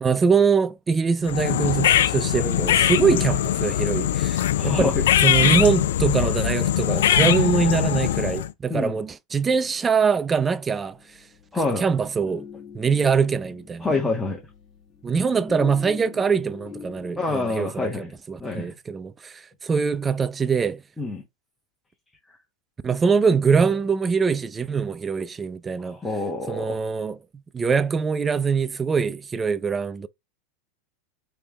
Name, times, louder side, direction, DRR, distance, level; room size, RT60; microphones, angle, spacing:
voice 1, 0.0-5.0 5.2-11.0 11.8-12.4 12.7-13.9 15.0-19.3 19.6-20.8 22.8-26.0 26.5-27.2 27.5-30.1, right 5 dB, 20° right, 0.4 m, -23 dB
sound 1, 1.3-8.5, left 11 dB, 70° left, 0.3 m, -21 dB
voice 2, 4.6-5.0 8.7-9.0 11.5-11.8 13.8-14.4 17.2-18.1 18.4-18.7 21.0-21.2 25.8-26.8, left 3 dB, 10° left, 1.2 m, -27 dB
sound 2, 10.8-17.6, left 6 dB, 30° left, 1.3 m, -43 dB
3.3 x 3.3 x 3.1 m
hypercardioid pair, 90°, 0 cm